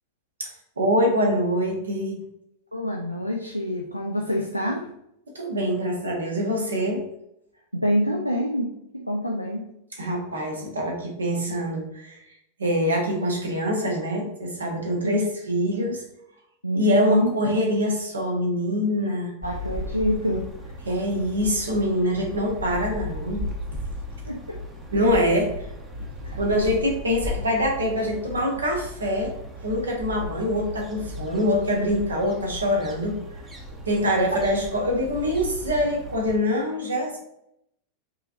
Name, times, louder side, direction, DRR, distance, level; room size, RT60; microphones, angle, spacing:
voice 1, 0.8-2.2 5.3-7.0 10.0-12.2 12.6-16.0 16.7-19.3 20.9-23.4 24.9-25.5 26.0-29.3 29.6-33.2 33.9-37.2, equal, 70° right, 1 dB, 0.9 m, -24 dB
voice 2, 2.7-4.9 7.7-9.6 15.0-15.2 16.6-17.3 19.4-20.7 24.3-24.6 26.2-26.4 34.0-34.2, equal, 90° right, 1 dB, 0.4 m, -26 dB
sound 1, 19.4-36.4, left 1 dB, 20° right, 0.7 m, -36 dB
4.8 x 3.0 x 2.5 m, 0.77 s
figure-of-eight pair, 90°, 0 cm